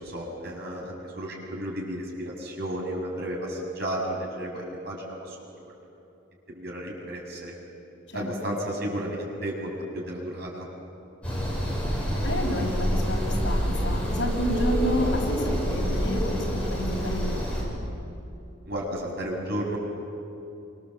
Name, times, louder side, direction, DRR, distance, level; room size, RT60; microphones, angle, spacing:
voice 1, 0.0-5.5 6.5-7.6 8.1-10.7 18.7-19.8, right 1 dB, 55° right, -1 dB, 7.1 m, -33 dB
voice 2, 8.1-8.5 12.2-17.8, equal, 70° left, -1 dB, 6.4 m, -30 dB
sound 1, 11.2-17.6, equal, 5° left, 7.6 m, -27 dB
28.5 x 25.5 x 8.0 m, 2.7 s
head